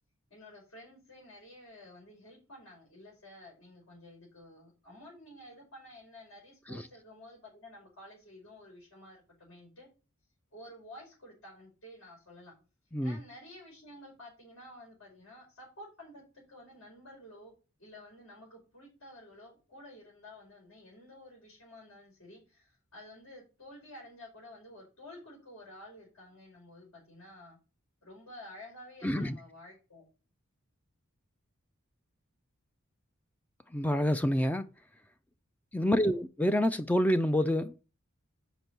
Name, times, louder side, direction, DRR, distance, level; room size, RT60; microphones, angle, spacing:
voice 1, 0.3-9.9 10.5-12.5 13.0-17.5 17.8-27.6 28.0-30.0 35.8-36.2, left 1 dB, 80° left, 4.9 m, -52 dB
voice 2, 29.0-29.4 33.7-34.7 35.7-37.8, equal, 10° left, 0.3 m, -27 dB
6.0 x 5.3 x 6.7 m
head